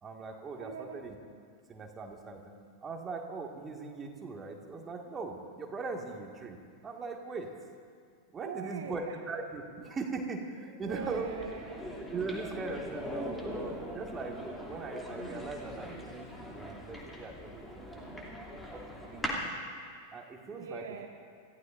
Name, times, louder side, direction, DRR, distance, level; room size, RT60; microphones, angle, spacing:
voice 1, 0.0-1.2 1.7-2.5 2.8-7.5 8.3-11.3 12.1-14.4 14.7-18.0 18.3-19.5 20.1-20.9, right 4 dB, 20° right, 1 dB, 1.9 m, -40 dB
voice 2, 0.6-1.0 8.4-9.1 10.8-11.8 20.5-21.1, right 6 dB, 60° right, 3 dB, 1.2 m, -42 dB
sound 1, 10.9-19.5, equal, 5° left, 2.7 m, -41 dB
28.0 x 15.5 x 2.6 m, 2.2 s
figure-of-eight pair, 90°, 0 cm